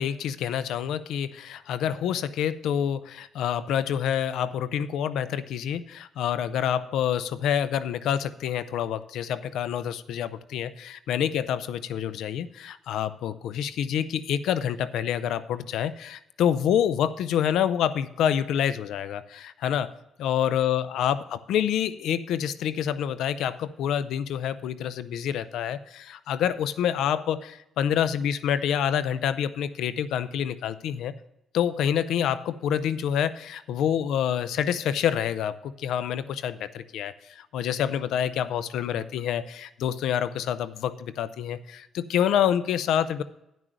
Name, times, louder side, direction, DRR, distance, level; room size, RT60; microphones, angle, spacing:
voice 1, 0.0-19.9 20.2-31.1 31.5-43.2, left 9 dB, 80° left, 15 dB, 0.5 m, -27 dB
10.5 x 6.2 x 6.4 m, 0.86 s
cardioid pair, 90°, 0 cm